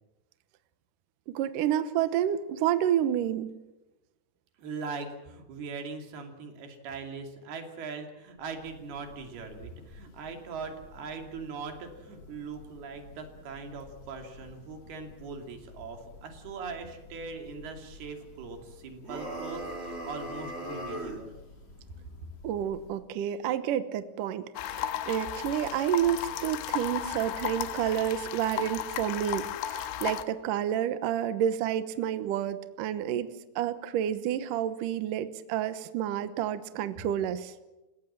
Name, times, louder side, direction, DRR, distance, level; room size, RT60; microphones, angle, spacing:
voice 1, 1.3-3.5 22.4-33.3 33.6-37.5, right 10 dB, 80° right, 11 dB, 1.9 m, -29 dB
voice 2, 4.6-21.3, right 4 dB, 60° right, 4 dB, 4.4 m, -41 dB
Church bell, 8.3-23.2, left 3 dB, 45° left, 5.0 m, -53 dB
sound 1, 19.0-21.3, right 1 dB, 15° right, 2.6 m, -38 dB
sound 2, 24.6-30.2, left 10 dB, 80° left, 3.3 m, -34 dB
29.5 x 17.0 x 7.5 m, 1.0 s
omnidirectional pair, 5.3 m